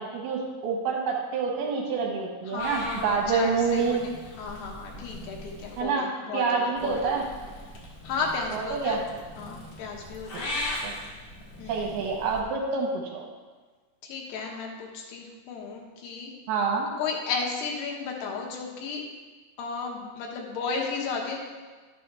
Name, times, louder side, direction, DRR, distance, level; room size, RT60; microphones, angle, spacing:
voice 1, 0.0-4.0 5.8-6.1 6.3-7.2 8.5-9.0 10.8-10.9 11.7-13.3 16.5-16.9, right 5 dB, 75° right, -1 dB, 2.7 m, -27 dB
voice 2, 2.5-7.3 8.0-9.0 9.4-10.5 11.6-11.9 14.0-16.3 17.0-19.0 19.6-21.4, left 4 dB, 75° left, 0 dB, 3.0 m, -34 dB
Purr / Meow, 2.6-5.8 6.8-12.4, left 1 dB, 55° left, 1.3 m, -39 dB
12.0 x 6.9 x 3.3 m, 1.4 s
omnidirectional pair, 5.0 m